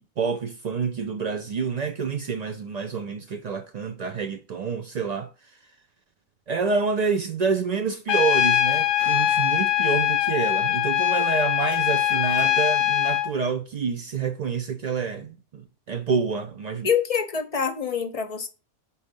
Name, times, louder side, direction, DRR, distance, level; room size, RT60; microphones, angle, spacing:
voice 1, 0.0-5.3 6.5-16.9, right 5 dB, 70° right, 0.4 m, -28 dB
Trumpet, 8.1-13.3, left 11 dB, 90° left, 0.9 m, -22 dB
sound 1, 8.6-9.6 9.8-9.9 11.6-12.9, right 1 dB, 25° right, 1.5 m, -45 dB
voice 2, 16.8-18.5, left 7 dB, 40° left, 0.6 m, -25 dB
4.7 x 4.1 x 5.2 m
omnidirectional pair, 1.3 m